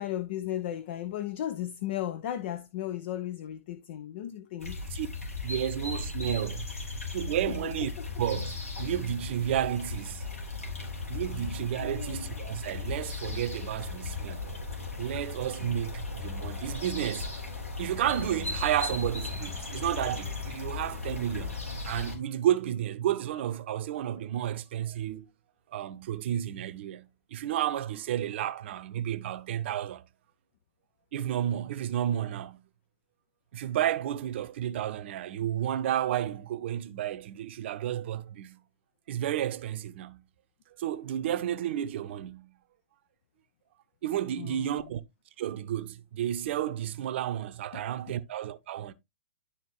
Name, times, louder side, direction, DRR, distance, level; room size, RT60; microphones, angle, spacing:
voice 1, 0.0-4.8 8.0-8.1 11.8-12.3 44.3-44.9 47.7-47.8, left 12 dB, 50° left, 0.7 m, -35 dB
sound 1, 4.6-22.2, left 4 dB, 80° left, 3.7 m, -37 dB
voice 2, 5.4-6.7 7.1-7.9 8.2-10.3 11.1-14.5 15.0-17.4 17.8-25.3 25.7-30.1 31.1-32.6 33.5-38.6 39.1-40.2 40.8-42.6 44.0-45.0 45.4-48.9, right 11 dB, 55° right, 0.7 m, -32 dB
11.5 x 4.5 x 3.1 m
figure-of-eight pair, 105°, 8 cm